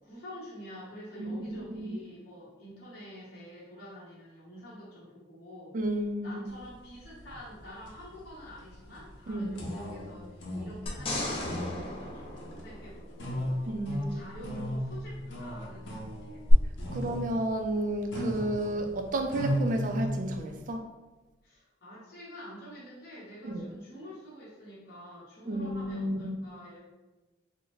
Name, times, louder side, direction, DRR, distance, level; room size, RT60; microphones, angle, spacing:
voice 1, 0.0-5.7 6.2-16.4 16.9-17.1 21.4-26.8, left 1 dB, 55° left, -9 dB, 1.0 m, -47 dB
voice 2, 1.2-2.0 5.7-6.4 9.3-9.6 13.7-14.1 14.4-14.7 16.9-20.9 23.4-23.8 25.5-26.4, right 1 dB, 45° right, 4 dB, 0.3 m, -32 dB
sound 1, 6.5-6.7 7.0-20.6, equal, 85° left, 0.6 m, -36 dB
sound 2, 10.9-13.4 16.5-16.6, left 1 dB, 30° left, 0.4 m, -36 dB
3.6 x 2.1 x 3.0 m, 1.1 s
head